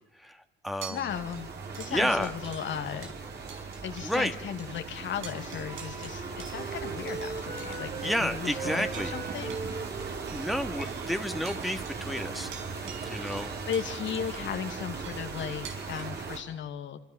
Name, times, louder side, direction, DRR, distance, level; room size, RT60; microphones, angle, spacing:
voice 1, 0.2-1.1 1.9-2.3 4.0-4.4 8.0-9.1 10.3-12.5 13.1-13.5, equal, ahead, 7 dB, 2.1 m, -30 dB
sound 1, 0.7-4.3 4.6-4.7 5.1-16.0, right 6 dB, 80° right, 5.9 m, -49 dB
voice 2, 0.9-3.1 3.8-9.9 13.7-17.0, left 8 dB, 70° left, 7 dB, 2.3 m, -36 dB
sound 2, 1.1-16.4, right 5 dB, 60° right, 5.8 m, -38 dB
Wind instrument woodwind instrument, 4.9-8.2 8.5-12.2, right 4 dB, 30° right, 3.9 m, -41 dB
28.0 x 26.0 x 7.3 m, 0.86 s
cardioid pair, 90°, 20 cm